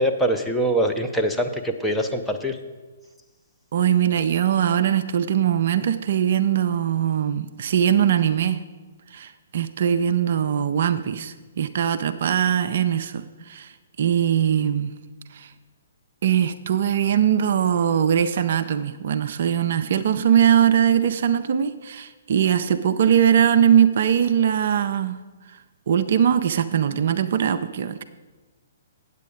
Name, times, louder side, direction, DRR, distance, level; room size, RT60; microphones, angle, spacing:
voice 1, 0.0-2.6, right 1 dB, ahead, 3 dB, 0.6 m, -23 dB
voice 2, 3.7-8.6 9.1-13.7 14.0-14.9 15.3-15.5 16.2-25.2 25.9-28.0, right 9 dB, 50° right, 10 dB, 0.4 m, -21 dB
8.3 x 8.1 x 5.0 m, 1.2 s
figure-of-eight pair, 125°, 0 cm